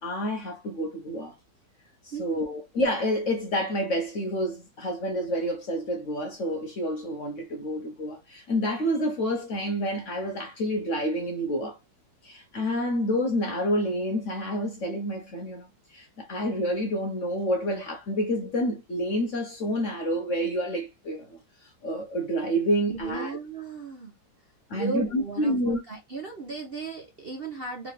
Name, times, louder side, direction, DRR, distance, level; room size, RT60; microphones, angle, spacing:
voice 1, 0.0-1.4 2.0-11.8 12.2-23.4 24.7-25.8, equal, 55° left, 0.9 m, -28 dB
voice 2, 22.9-24.1 24.7-27.9, right 4 dB, 45° right, 0.7 m, -36 dB
3.7 x 3.4 x 3.2 m
omnidirectional pair, 1.9 m